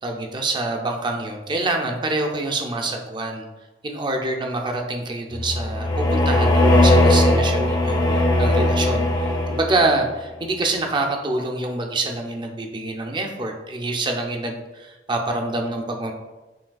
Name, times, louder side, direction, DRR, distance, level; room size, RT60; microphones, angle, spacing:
voice 1, 0.0-3.4 3.8-16.1, right 2 dB, 25° right, 3 dB, 0.4 m, -26 dB
sound 1, 5.3-10.0, left 1 dB, 25° left, 0.5 m, -18 dB
5.7 x 2.7 x 2.3 m, 1.1 s
head